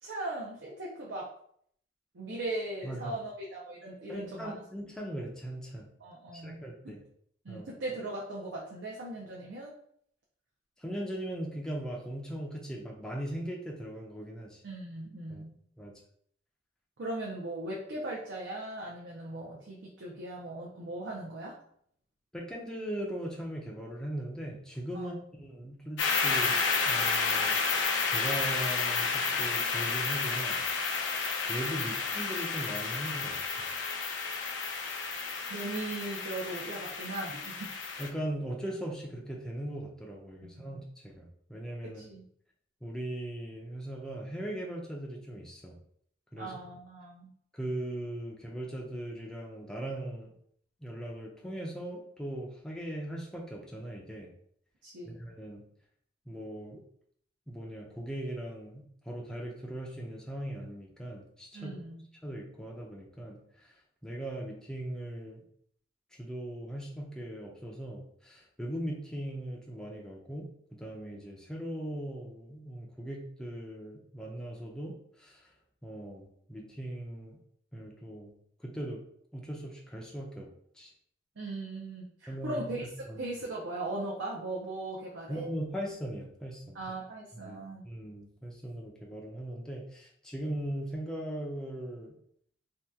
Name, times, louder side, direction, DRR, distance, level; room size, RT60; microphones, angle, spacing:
voice 1, 0.0-1.3 2.1-4.5 6.0-7.0 7.4-9.7 14.6-15.6 17.0-21.6 24.9-25.2 35.5-37.6 40.4-40.7 41.8-42.3 46.4-47.3 54.8-55.2 61.5-62.0 81.4-82.8 83.2-85.4 86.7-87.9, right 2 dB, 70° right, -3 dB, 0.6 m, -38 dB
voice 2, 2.8-3.2 4.1-5.9 6.3-7.0 7.5-7.7 10.8-14.6 15.3-15.4 15.8-15.9 22.3-26.6 26.8-27.6 28.0-30.6 31.5-33.4 38.0-41.2 41.5-42.0 42.8-45.8 46.3-46.6 47.5-50.3 50.8-54.3 55.0-55.6 56.3-56.8 57.5-61.8 62.2-63.7 64.0-65.4 66.2-70.5 70.8-75.4 75.8-77.4 77.7-78.3 78.6-79.0 79.3-80.5 80.8-80.9 82.3-82.8 83.1-83.2 85.3-86.8 87.3-87.6 87.8-92.1, right 1 dB, 5° left, -2 dB, 0.4 m, -39 dB
sound 1, 26.0-38.1, left 4 dB, 75° left, 0.5 m, -31 dB
2.8 x 2.3 x 3.4 m, 0.65 s
head